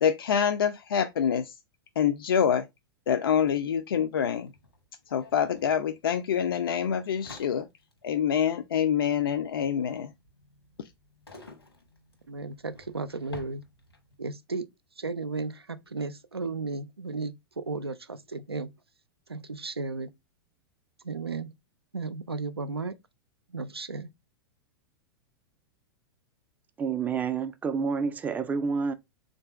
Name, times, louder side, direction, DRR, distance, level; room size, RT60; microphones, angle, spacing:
voice 1, 0.0-1.6 2.0-2.7 3.1-4.5 5.1-7.7 8.0-10.1, left 8 dB, 65° left, 0.4 m, -26 dB
sound 1, 3.5-3.6 3.8-14.2, left 2 dB, 85° left, 1.1 m, -52 dB
voice 2, 12.3-13.6 14.2-14.7 15.0-18.7 19.3-20.1 21.0-21.5 21.9-23.0 23.5-24.1, right 3 dB, 85° right, 0.4 m, -34 dB
voice 3, 26.8-28.9, right 5 dB, 10° right, 0.3 m, -29 dB
3.5 x 2.6 x 3.2 m
figure-of-eight pair, 95°, 13 cm